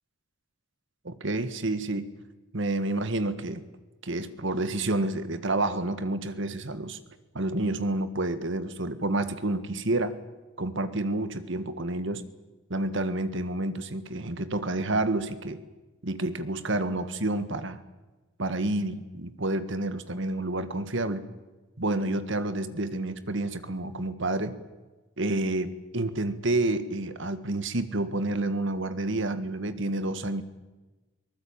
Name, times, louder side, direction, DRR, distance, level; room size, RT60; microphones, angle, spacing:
voice 1, 1.0-2.1 2.5-3.6 4.0-7.0 7.3-10.2 10.6-12.2 12.7-15.6 16.0-17.8 18.4-21.3 21.8-24.6 25.2-30.4, right 2 dB, 60° right, 11 dB, 1.7 m, -29 dB
23.0 x 19.5 x 8.8 m, 1.2 s
head